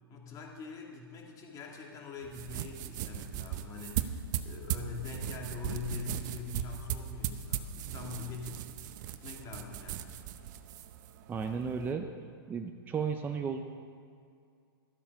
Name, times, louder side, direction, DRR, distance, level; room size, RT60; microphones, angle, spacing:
voice 1, 0.1-8.7 9.2-10.2, left 5 dB, 25° left, 0 dB, 2.2 m, -43 dB
sound 1, 2.2-11.9, right 10 dB, 50° right, 0.7 m, -38 dB
voice 2, 11.3-12.0 12.5-13.6, right 6 dB, 15° right, 5 dB, 0.6 m, -34 dB
13.5 x 8.4 x 5.9 m, 2.4 s
hypercardioid pair, 135°, 13 cm